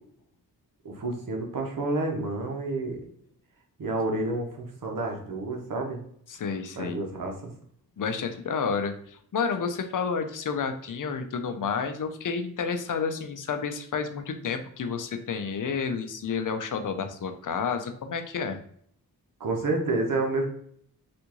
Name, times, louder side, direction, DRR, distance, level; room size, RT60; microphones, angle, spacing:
voice 1, 0.8-3.0 3.8-6.0 6.8-7.5 19.4-20.4, right 2 dB, 60° right, 1 dB, 1.0 m, -29 dB
voice 2, 6.3-7.0 8.0-18.6, left 5 dB, 55° left, 7 dB, 0.6 m, -30 dB
3.5 x 2.5 x 3.0 m, 0.64 s
cardioid pair, 60°, 38 cm